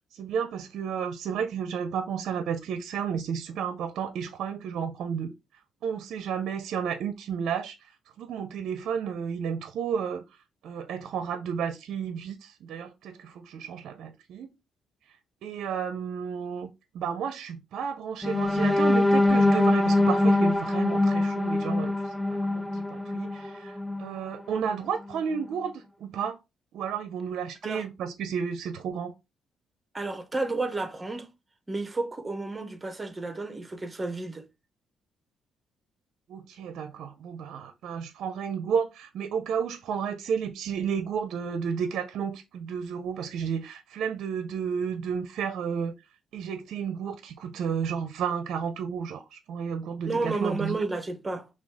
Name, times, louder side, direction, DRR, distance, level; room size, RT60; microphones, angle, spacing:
voice 1, 0.1-5.3 5.8-7.9 8.2-10.2 10.6-14.5 15.4-26.4 26.7-29.1 36.3-45.9 46.3-50.8, right 7 dB, 75° right, 0.5 m, -32 dB
sound 1, 18.2-24.2 24.6-24.8 25.2-25.4, left 2 dB, 5° left, 0.4 m, -23 dB
voice 2, 29.9-31.3 31.7-34.5 50.1-51.5, right 3 dB, 20° right, 0.8 m, -31 dB
5.9 x 2.3 x 3.5 m
cardioid pair, 90°, 0 cm